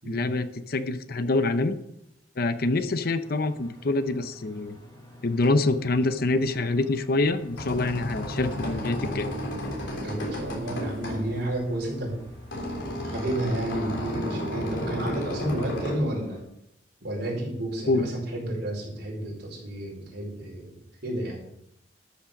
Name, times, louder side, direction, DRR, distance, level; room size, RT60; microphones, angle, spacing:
voice 1, 0.1-1.8 2.4-4.8 5.2-9.3 17.9-18.1, left 2 dB, 55° left, 11 dB, 0.7 m, -26 dB
sound 1, 3.2-16.4, left 1 dB, 25° left, 3.9 m, -48 dB
sound 2, 7.3-16.0, equal, 85° left, 3.6 m, -33 dB
voice 2, 10.0-12.2 13.0-16.4 17.0-20.7 21.0-21.5, right 1 dB, 65° right, -2 dB, 4.9 m, -31 dB
13.0 x 7.2 x 5.2 m, 0.79 s
head